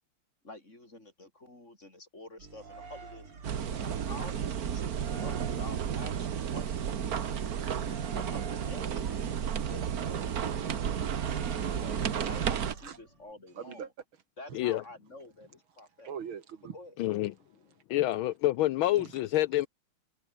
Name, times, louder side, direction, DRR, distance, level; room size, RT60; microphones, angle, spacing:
voice 1, 0.4-3.3 3.7-7.7 8.2-9.3 9.7-10.9 11.7-13.9 14.4-16.1 16.7-17.0 17.6-17.7, left 2 dB, 30° left, 5.8 m, -49 dB
sound 1, 2.4-13.3, right 4 dB, 85° right, 4.9 m, -49 dB
sound 2, 3.4-12.7, right 8 dB, 50° right, 1.5 m, -32 dB
voice 2, 7.4-8.1 9.0-9.1 11.6-12.5 12.8-13.0 13.5-13.9 14.5-14.6 16.0-16.8 18.9-19.1, right 7 dB, 70° right, 2.5 m, -44 dB
voice 3, 17.0-17.3 17.9-19.7, left 15 dB, 75° left, 1.4 m, -27 dB
omnidirectional pair, 2.4 m